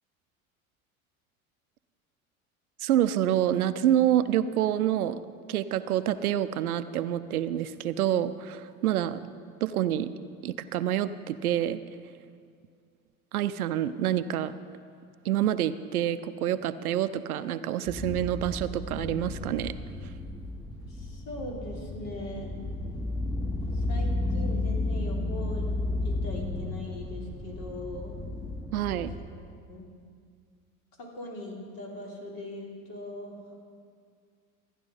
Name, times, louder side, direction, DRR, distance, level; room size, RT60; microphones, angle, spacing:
voice 1, 2.8-5.2 5.5-9.2 9.6-10.1 10.4-11.8 13.3-14.5 15.2-19.7 28.7-29.1, right 11 dB, 75° right, 14 dB, 0.6 m, -27 dB
sound 1, 17.9-29.2, left 2 dB, 10° left, 1.2 m, -33 dB
voice 2, 20.9-22.5 23.7-25.7 26.0-28.1 29.7-29.9 31.0-33.5, left 1 dB, 50° left, -2 dB, 3.3 m, -40 dB
14.0 x 10.0 x 5.5 m, 2.2 s
figure-of-eight pair, 75°, 44 cm